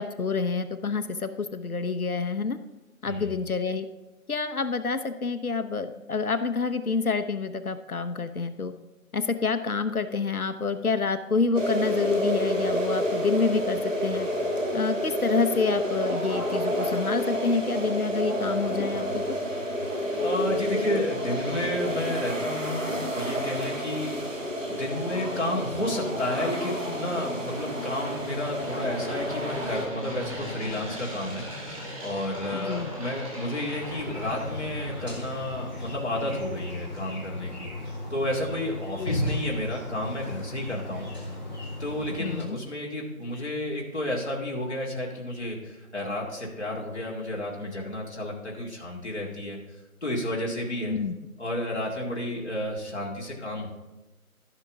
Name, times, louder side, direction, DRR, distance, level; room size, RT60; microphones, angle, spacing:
voice 1, 0.0-2.6 3.0-3.9 4.3-8.7 9.1-14.3 14.7-19.2 32.5-32.9 39.0-39.3 42.2-42.6 50.9-51.1, left 4 dB, 75° left, 10 dB, 0.9 m, -28 dB
voice 2, 3.0-3.4 20.2-24.1 24.7-31.4 32.0-37.7 38.1-41.1 41.8-49.6 50.0-50.9 51.4-53.7, left 1 dB, 50° left, -3 dB, 2.2 m, -31 dB
sound 1, 11.6-29.9, equal, 60° right, 2.1 m, -29 dB
sound 2, 24.1-36.1, equal, 25° right, 2.3 m, -40 dB
sound 3, 33.7-42.5, left 1 dB, 30° left, 1.8 m, -35 dB
15.0 x 5.8 x 3.7 m, 1.1 s
figure-of-eight pair, 175°, 43 cm